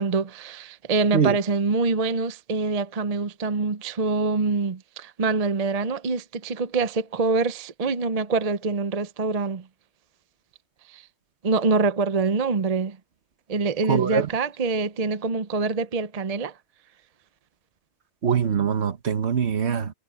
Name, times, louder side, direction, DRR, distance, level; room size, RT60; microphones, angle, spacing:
voice 1, 0.0-9.6 10.9-11.0 11.4-13.0 13.5-16.5, right 4 dB, 35° right, 0.6 m, -25 dB
voice 2, 13.9-14.3 18.2-19.9, right 7 dB, 55° right, 1.4 m, -23 dB
omnidirectional pair, 1.4 m